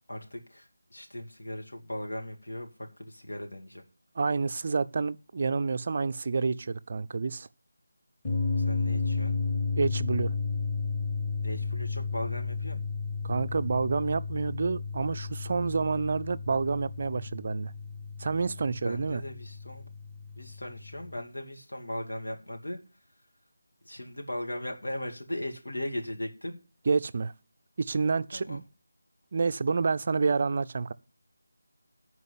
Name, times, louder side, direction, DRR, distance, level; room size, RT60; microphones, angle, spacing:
voice 1, 0.1-2.7 3.0-3.8 8.6-9.4 11.4-12.9 18.8-19.9 20.4-22.8 23.8-26.6 28.3-28.6, left 1 dB, 80° left, 2.4 m, -38 dB
voice 2, 4.2-7.5 9.8-10.3 13.2-17.7 18.2-19.2 26.9-27.3 27.8-28.6 29.3-30.9, right 4 dB, 45° right, 0.4 m, -28 dB
sound 1, 8.2-21.2, left 4 dB, 15° left, 3.7 m, -33 dB
11.0 x 4.7 x 8.3 m
figure-of-eight pair, 165°, 0 cm